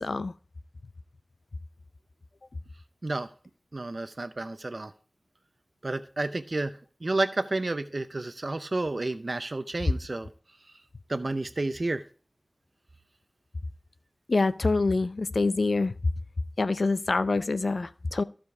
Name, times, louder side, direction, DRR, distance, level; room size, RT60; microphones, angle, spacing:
voice 1, 0.0-0.3 14.3-15.9 16.6-18.2, left 3 dB, 80° left, 0.5 m, -26 dB
voice 2, 3.7-4.9 5.8-10.3 11.1-12.0, right 2 dB, 55° right, 0.6 m, -31 dB
14.5 x 5.1 x 4.8 m
wide cardioid pair, 50°, 0 cm